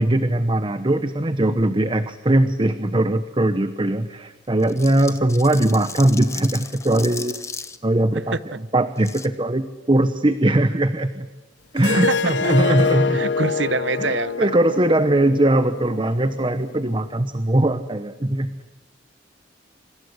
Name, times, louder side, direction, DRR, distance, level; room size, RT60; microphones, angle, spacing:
voice 1, 0.0-7.4 7.8-11.3 11.7-13.2 14.0-18.6, right 1 dB, 25° right, 11 dB, 1.0 m, -20 dB
sound 1, 4.6-7.8 9.0-9.3, left 4 dB, 15° left, 1.3 m, -36 dB
Harp, 11.8-16.9, left 4 dB, 75° left, 1.1 m, -25 dB
voice 2, 12.4-12.7 13.1-14.5, right 3 dB, 75° right, 16 dB, 1.0 m, -25 dB
26.5 x 26.5 x 8.1 m, 1.1 s
head